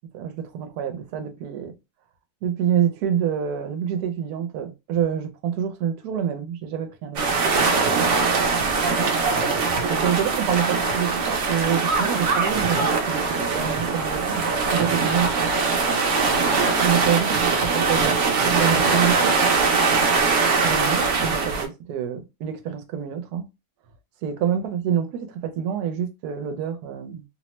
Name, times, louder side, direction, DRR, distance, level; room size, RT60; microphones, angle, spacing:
voice 1, 0.1-1.8 2.4-7.2 9.9-15.3 16.8-19.4 20.6-23.5 24.2-27.2, right 9 dB, 80° right, 1.1 m, -27 dB
sound 1, 7.2-21.7, right 4 dB, 60° right, 0.9 m, -22 dB
2.9 x 2.1 x 2.9 m
omnidirectional pair, 1.6 m